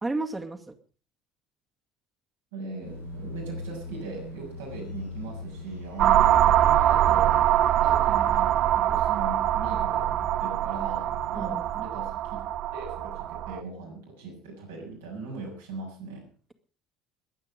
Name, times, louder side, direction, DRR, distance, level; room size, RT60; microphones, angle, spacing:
voice 1, 0.0-0.7 11.3-11.9, right 2 dB, 20° right, 4 dB, 2.3 m, -33 dB
voice 2, 2.5-7.4 7.8-10.1 10.4-12.4 12.7-16.3, right 3 dB, 75° right, 0 dB, 7.1 m, -39 dB
sound 1, 2.8-11.8, left 2 dB, 90° left, 7.4 m, -42 dB
sound 2, 6.0-13.6, right 12 dB, 55° right, 0.6 m, -23 dB
22.0 x 9.0 x 5.1 m, 0.39 s
figure-of-eight pair, 60°, 0 cm